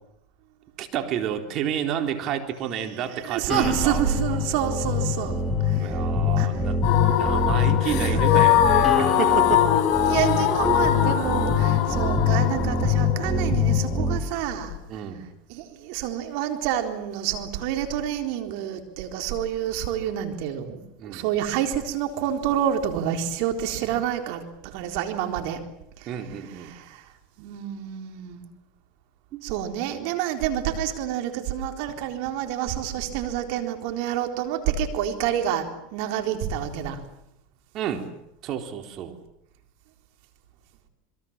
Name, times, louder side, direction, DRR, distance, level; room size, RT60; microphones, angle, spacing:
voice 1, 0.8-4.0 5.8-9.7 14.9-15.3 21.0-21.3 26.1-26.7 29.3-29.4 37.7-38.1 38.4-39.1, right 9 dB, 50° right, 6 dB, 3.9 m, -30 dB
voice 2, 2.9-6.0 6.4-6.6 8.1-8.6 10.0-15.0 15.5-25.6 26.0-27.1 27.4-28.5 29.4-37.0, right 10 dB, 65° right, 6 dB, 3.9 m, -28 dB
sound 1, 3.5-14.2, left 5 dB, 10° left, 3.5 m, -24 dB
sound 2, 6.8-14.8, left 10 dB, 60° left, 6.2 m, -22 dB
27.0 x 22.5 x 7.5 m, 0.80 s
hypercardioid pair, 100°, 0 cm